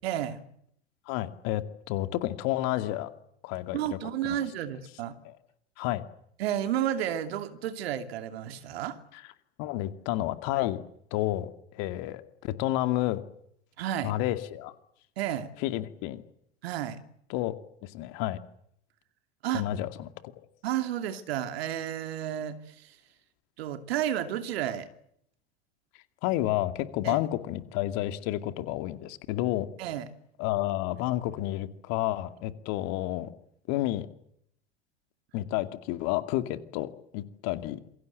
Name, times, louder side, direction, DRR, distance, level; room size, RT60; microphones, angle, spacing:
voice 1, 0.0-0.4 3.7-5.2 6.4-9.0 13.8-14.1 15.2-15.5 16.6-17.0 19.4-19.7 20.6-23.0 23.6-24.9 27.0-27.2 29.8-30.1, right 11 dB, 65° right, 9 dB, 2.8 m, -31 dB
voice 2, 1.1-3.1 3.4-3.8 4.2-4.4 5.2-5.3 5.8-6.0 9.6-10.8 11.1-13.2 14.0-14.7 15.6-16.2 17.3-17.5 17.8-18.4 19.5-20.5 26.2-29.7 30.4-33.3 33.7-34.1 35.3-37.8, left 15 dB, 55° left, 10 dB, 2.4 m, -30 dB
27.5 x 23.0 x 7.9 m, 0.71 s
figure-of-eight pair, 80°, 33 cm